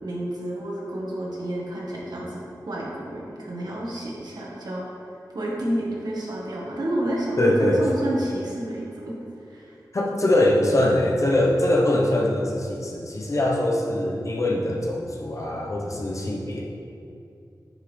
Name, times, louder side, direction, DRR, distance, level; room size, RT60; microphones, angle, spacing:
voice 1, 0.0-4.8 5.3-9.1 9.5-9.7, right 1 dB, 70° right, -4 dB, 1.6 m, -30 dB
voice 2, 7.4-7.8 9.9-16.6, left 1 dB, 45° left, -2 dB, 1.0 m, -22 dB
9.4 x 5.4 x 3.4 m, 2.6 s
wide cardioid pair, 100°, 7 cm